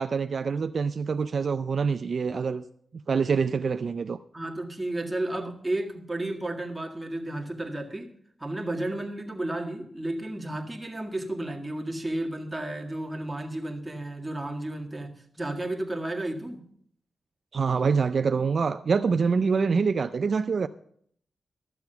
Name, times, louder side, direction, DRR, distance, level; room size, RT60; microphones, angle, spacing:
voice 1, 0.0-2.6 3.1-4.2 17.5-20.7, right 5 dB, 55° right, 0.4 m, -25 dB
voice 2, 4.3-8.1 8.4-16.6, right 1 dB, 15° right, 1.8 m, -32 dB
13.0 x 7.0 x 6.8 m
cardioid pair, 95°, 0 cm